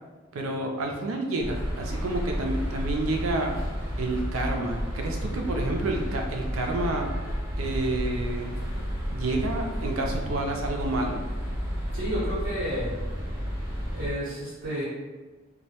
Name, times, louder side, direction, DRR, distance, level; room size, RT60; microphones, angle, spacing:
voice 1, 0.3-3.6 4.0-7.1 7.6-8.5 9.1-11.2, right 2 dB, 85° right, 3 dB, 0.4 m, -29 dB
sound 1, 1.4-14.1, equal, 15° right, 0.6 m, -31 dB
voice 2, 11.9-12.9 13.9-14.8, equal, 60° right, -9 dB, 0.7 m, -32 dB
2.2 x 2.0 x 2.8 m, 1.3 s
head